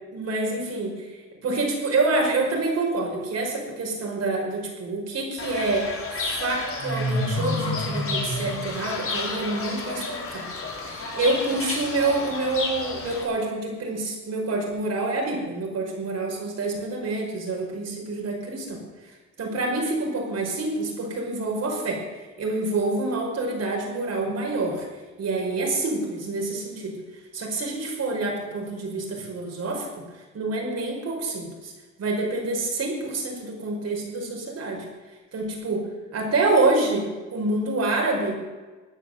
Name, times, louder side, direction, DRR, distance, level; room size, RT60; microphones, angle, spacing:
voice 1, 0.1-10.5 10.8-18.8 19.4-22.0 22.4-24.9 25.2-27.0 27.3-30.0 30.3-31.7 32.0-34.9 35.3-35.9 36.1-37.1 37.3-38.4, right 2 dB, 55° right, 0 dB, 5.4 m, -27 dB
Fowl / Bird, 5.4-13.2, left 2 dB, 45° left, 4.7 m, -30 dB
16.0 x 9.7 x 8.0 m, 1.3 s
cardioid pair, 90°, 30 cm